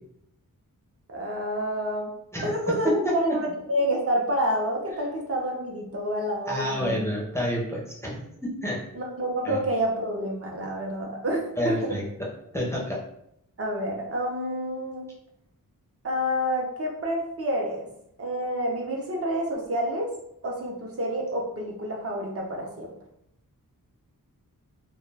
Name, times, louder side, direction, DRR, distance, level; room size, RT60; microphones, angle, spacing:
voice 1, 1.1-2.1 2.4-7.0 8.9-12.0 13.6-15.1 16.0-17.9 18.2-20.1 20.4-22.9, equal, 40° right, -1 dB, 0.5 m, -28 dB
voice 2, 2.8-3.4 6.5-8.2 8.6-8.8 9.5-9.6 11.6-12.3 12.5-13.0, equal, 10° left, -3 dB, 0.4 m, -28 dB
2.3 x 2.1 x 3.2 m, 0.75 s
wide cardioid pair, 145°, 35 cm